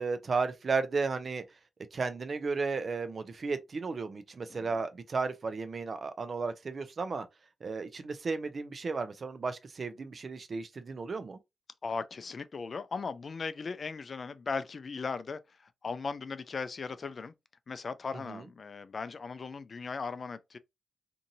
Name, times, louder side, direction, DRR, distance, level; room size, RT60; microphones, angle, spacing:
voice 1, 0.0-1.4 1.9-7.2 7.6-11.4 18.3-18.4, right 4 dB, 50° right, 0.5 m, -34 dB
voice 2, 11.8-17.3 17.7-20.6, left 4 dB, 50° left, 0.3 m, -38 dB
2.6 x 2.6 x 2.7 m
cardioid pair, 70°, 0 cm